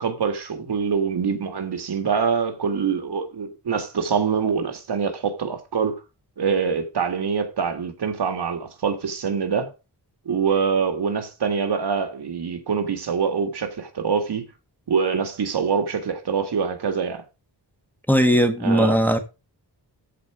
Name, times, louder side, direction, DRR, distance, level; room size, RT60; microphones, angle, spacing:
voice 1, 0.0-5.9 6.4-9.7 10.3-14.4 14.9-17.2 18.6-19.0, right 6 dB, 70° right, 2.0 m, -24 dB
voice 2, 18.1-19.2, equal, 5° left, 1.3 m, -18 dB
14.0 x 4.6 x 5.0 m
wide cardioid pair, 130°, 41 cm